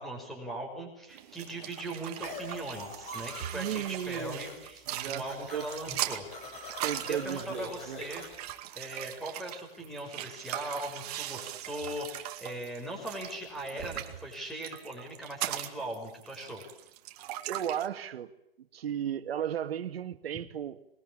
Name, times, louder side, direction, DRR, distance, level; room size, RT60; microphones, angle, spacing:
voice 1, 0.0-6.2 7.0-8.2 8.7-16.6, right 1 dB, ahead, 2 dB, 6.0 m, -39 dB
sound 1, 1.1-17.9, right 13 dB, 40° right, 2.3 m, -40 dB
sound 2, 2.2-3.7 4.0-4.7 4.9-8.5, left 3 dB, 20° left, 5.4 m, -44 dB
voice 2, 3.5-4.4 4.9-5.7 6.8-8.0 17.5-18.3 18.6-20.9, right 9 dB, 75° right, 8 dB, 2.2 m, -35 dB
26.5 x 22.0 x 8.9 m, 0.84 s
hypercardioid pair, 165°, 30 cm